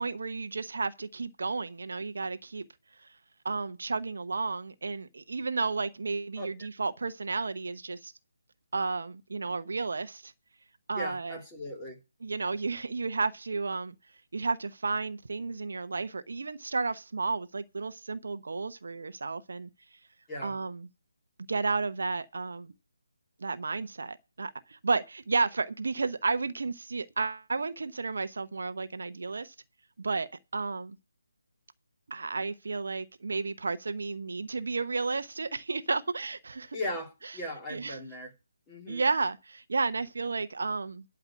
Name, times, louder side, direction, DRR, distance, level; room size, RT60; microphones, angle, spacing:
voice 1, 0.0-2.6 3.0-3.1 3.4-8.1 8.7-10.3 10.9-11.4 12.2-13.9 14.3-19.7 20.4-20.9 21.5-22.7 23.4-29.5 30.0-31.0 32.1-36.8 37.7-38.0 38.9-41.0, right 4 dB, 60° right, 0.9 m, -32 dB
voice 2, 11.0-12.0 20.3-20.5 36.7-38.3 38.7-39.0, left 1 dB, 15° left, 2.7 m, -38 dB
12.0 x 4.9 x 8.3 m
figure-of-eight pair, 150°, 0 cm